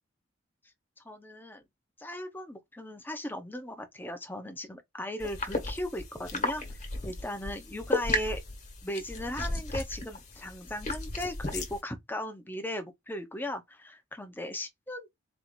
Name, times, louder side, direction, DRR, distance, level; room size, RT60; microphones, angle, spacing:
voice 1, 1.0-1.6 2.0-8.4 8.8-15.1, left 1 dB, 10° left, 0.9 m, -37 dB
sound 1, 5.2-11.8, left 2 dB, 35° left, 1.5 m, -34 dB
4.6 x 2.8 x 3.9 m
head